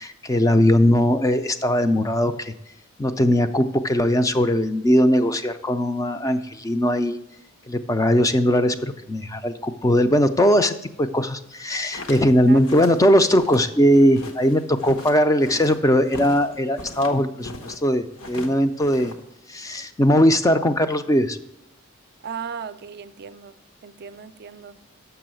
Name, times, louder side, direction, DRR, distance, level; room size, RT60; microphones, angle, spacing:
voice 1, 0.0-2.5 3.0-7.2 7.7-19.1 19.5-21.4, equal, 15° left, 10 dB, 0.4 m, -19 dB
sound 1, 11.6-17.8 18.1-19.4, left 2 dB, 70° left, 1.1 m, -40 dB
voice 2, 22.2-23.6 23.8-24.8, right 6 dB, 50° right, 13 dB, 0.4 m, -36 dB
6.9 x 6.3 x 7.5 m, 0.86 s
head